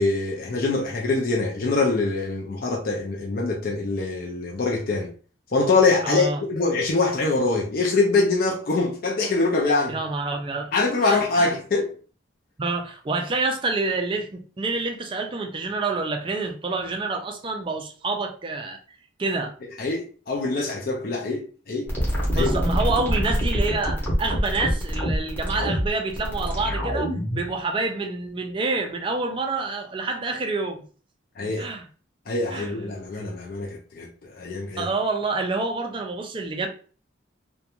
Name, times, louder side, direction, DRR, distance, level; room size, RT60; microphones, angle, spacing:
voice 1, 0.0-5.1 5.5-10.0 10.7-11.9 19.8-21.9 22.3-22.6 31.4-31.7 32.3-34.1 34.4-34.9, left 3 dB, 50° left, 0.5 m, -24 dB
voice 2, 6.0-6.4 9.9-10.7 11.0-11.5 12.6-18.8 19.2-19.5 22.3-30.8 31.6-31.9 32.5-32.9 34.8-36.7, right 3 dB, 25° right, 0.4 m, -27 dB
sound 1, 21.9-27.5, equal, 10° left, 0.7 m, -25 dB
2.4 x 2.2 x 2.8 m
head